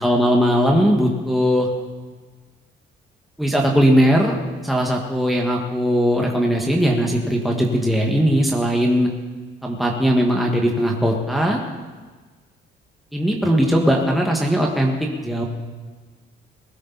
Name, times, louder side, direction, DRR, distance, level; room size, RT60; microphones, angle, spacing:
voice 1, 0.0-1.7 3.4-4.4 4.6-9.1 9.6-11.6 13.1-14.9 15.2-15.4, equal, ahead, 0 dB, 1.9 m, -19 dB
20.5 x 12.5 x 4.2 m, 1.4 s
cardioid pair, 90°, 20 cm